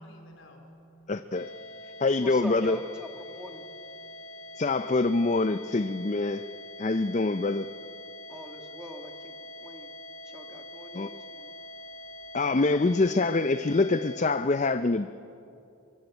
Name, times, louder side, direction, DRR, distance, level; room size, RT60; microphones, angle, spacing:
voice 1, 0.0-1.4 4.0-4.6 11.6-12.5, equal, 65° left, 3 dB, 4.2 m, -54 dB
voice 2, 1.1-1.5 2.0-2.8 4.6-6.4 6.8-7.7 10.9-11.1 12.3-15.2, left 3 dB, 35° left, 11 dB, 0.5 m, -25 dB
sound 1, 1.3-14.2, left 1 dB, 80° left, 2.4 m, -44 dB
voice 3, 2.2-3.7 8.3-10.0 10.2-11.5, equal, 5° right, 3 dB, 1.5 m, -44 dB
24.0 x 22.5 x 8.1 m, 2.6 s
head